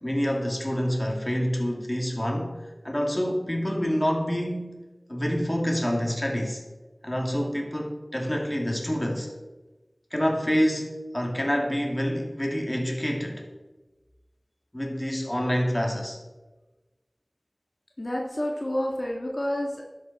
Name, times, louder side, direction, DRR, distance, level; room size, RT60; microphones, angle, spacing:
voice 1, 0.0-4.8 5.1-6.6 7.0-9.3 10.1-13.5 14.7-16.2, equal, 25° left, 2.3 m, -27 dB
voice 2, 18.0-19.9, left 1 dB, 50° left, 1.7 m, -29 dB
12.5 x 10.5 x 4.1 m
wide cardioid pair, 50°, 0 cm